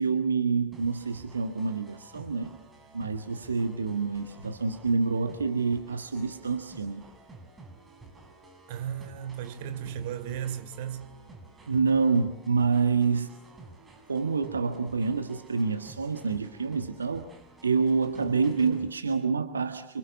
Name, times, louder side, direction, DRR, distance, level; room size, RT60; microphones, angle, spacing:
voice 1, 0.0-2.6 2.9-7.0 11.7-13.3 14.1-17.3 17.6-20.0, right 4 dB, 75° right, 1.6 m, -27 dB
sound 1, 0.7-19.0, right 3 dB, 15° right, 6.0 m, -51 dB
voice 2, 8.7-11.1 18.3-18.8, right 9 dB, 50° right, 3.0 m, -36 dB
30.0 x 26.0 x 7.3 m
figure-of-eight pair, 90°, 0 cm